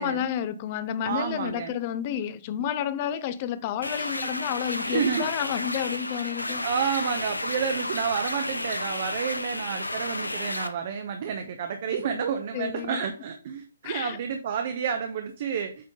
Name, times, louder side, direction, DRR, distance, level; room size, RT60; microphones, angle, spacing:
voice 1, 0.0-6.6 7.0-7.1 12.5-13.0 13.8-14.2, left 10 dB, 35° left, 0.6 m, -30 dB
voice 2, 1.0-1.8 4.8-5.3 6.5-15.9, right 7 dB, 45° right, 0.7 m, -30 dB
sound 1, 3.8-10.7, left 2 dB, 85° left, 0.7 m, -32 dB
8.6 x 3.7 x 3.7 m
figure-of-eight pair, 130°, 0 cm